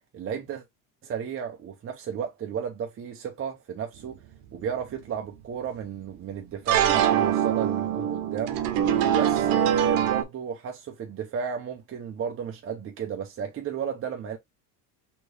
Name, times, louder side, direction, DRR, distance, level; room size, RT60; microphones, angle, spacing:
voice 1, 0.1-0.6 1.0-4.2 4.5-8.6 9.1-14.4, right 7 dB, 30° right, 0.8 m, -33 dB
sound 1, 4.1-4.2 6.7-10.2, right 10 dB, 75° right, 0.9 m, -23 dB
4.3 x 3.1 x 3.2 m
cardioid pair, 130°, 42 cm